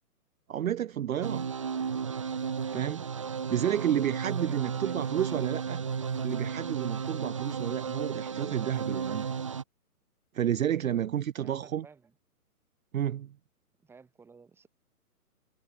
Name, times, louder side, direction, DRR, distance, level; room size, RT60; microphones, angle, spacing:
voice 1, 0.5-1.5 2.7-3.1 3.5-5.8 6.2-9.3 10.3-11.9 12.9-13.3, right 10 dB, 60° right, 0.6 m, -31 dB
sound 1, 1.2-9.6, right 6 dB, 20° right, 0.6 m, -33 dB
voice 2, 4.3-5.4 11.4-12.1 13.8-14.7, right 5 dB, 5° right, 2.9 m, -55 dB
hypercardioid pair, 160°, 46 cm